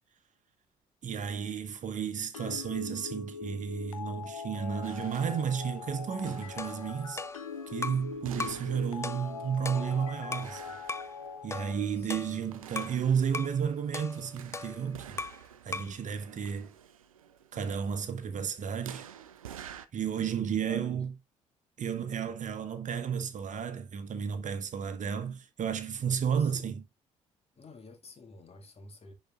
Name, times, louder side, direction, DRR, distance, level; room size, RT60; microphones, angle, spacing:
voice 1, 1.0-7.2 7.7-10.6 11.4-15.2 15.6-16.7 17.5-19.1 19.9-21.1 21.8-26.8, right 7 dB, 45° right, 1.2 m, -32 dB
sound 1, 2.3-11.7, left 5 dB, 90° left, 0.6 m, -41 dB
sound 2, 4.8-19.9, right 9 dB, 85° right, 0.5 m, -51 dB
sound 3, 6.6-8.1 8.4-8.7 9.0-10.6 10.9-11.1 11.5-13.0 13.3-13.6 13.9-15.5 15.7-16.0, left 3 dB, 15° left, 0.5 m, -39 dB
voice 2, 12.0-12.4 20.4-21.0 26.0-26.8 27.6-29.1, left 4 dB, 35° left, 1.9 m, -51 dB
10.5 x 4.2 x 2.4 m
figure-of-eight pair, 50°, 17 cm